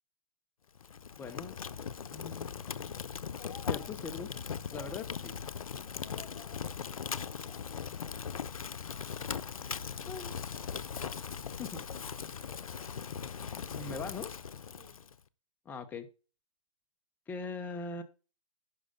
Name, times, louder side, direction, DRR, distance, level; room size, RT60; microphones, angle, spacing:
Fire, 0.7-15.1, left 7 dB, 90° left, 0.6 m, -39 dB
voice 1, 1.2-1.6 2.1-2.7 3.7-4.3 4.7-5.3 10.1-10.3 11.6-11.8 13.7-14.3 15.7-16.1 17.3-18.0, left 4 dB, 10° left, 8 dB, 0.8 m, -40 dB
voice 2, 3.3-3.9 4.6-4.9 6.0-7.7 8.0-8.4 14.7-15.0, left 6 dB, 50° left, 3 dB, 4.2 m, -54 dB
11.0 x 4.8 x 5.4 m, 0.35 s
hypercardioid pair, 150°, 18 cm